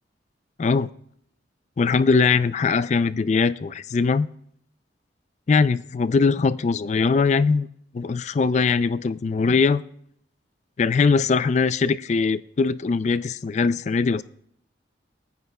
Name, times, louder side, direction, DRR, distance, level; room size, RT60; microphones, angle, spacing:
voice 1, 1.8-4.3 5.5-7.7 7.9-9.8 10.8-14.2, left 4 dB, 40° left, 15 dB, 0.3 m, -21 dB
22.5 x 9.4 x 2.2 m, 0.69 s
head